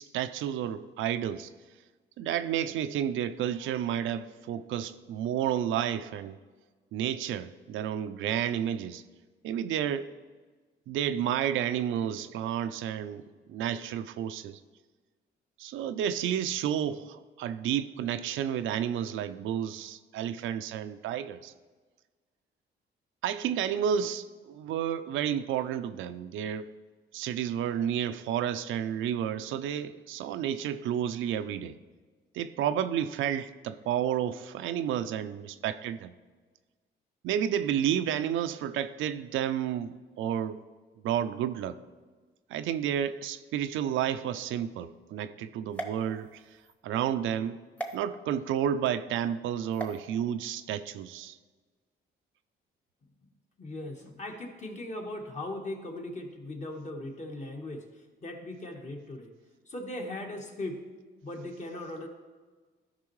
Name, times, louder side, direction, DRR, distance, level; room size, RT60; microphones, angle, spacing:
voice 1, 0.0-1.5 2.2-6.4 6.9-9.0 9.4-10.1 10.9-13.2 13.5-14.6 15.6-21.5 23.2-26.7 27.1-31.8 32.3-36.1 37.2-40.6 41.0-41.8 42.5-46.4 46.8-47.6 47.9-51.4, right 9 dB, 80° right, 11 dB, 0.4 m, -31 dB
sound 1, 45.7-46.7 47.8-48.0 49.7-50.0, right 2 dB, 5° left, 0.9 m, -39 dB
voice 2, 53.6-59.3 59.6-60.8 61.2-62.1, left 1 dB, 35° left, 2 dB, 1.3 m, -39 dB
12.0 x 5.4 x 3.1 m, 1.4 s
cardioid pair, 90°, 20 cm